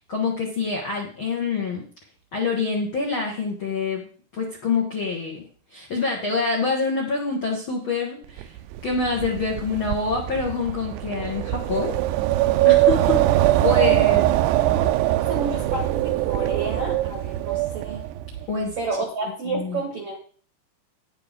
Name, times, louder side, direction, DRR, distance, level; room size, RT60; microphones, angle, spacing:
voice 1, 0.1-1.8 2.3-4.1 4.3-5.4 5.7-8.5 8.8-11.9 12.6-14.3 18.5-18.7 19.5-19.8, left 4 dB, 75° left, -1 dB, 1.1 m, -26 dB
Wind, 8.4-18.5, right 15 dB, 85° right, 2.6 m, -22 dB
voice 2, 14.5-15.0 15.3-18.0 18.8-20.2, right 3 dB, 65° right, 1 dB, 1.5 m, -30 dB
10.0 x 9.0 x 3.6 m, 0.43 s
omnidirectional pair, 4.8 m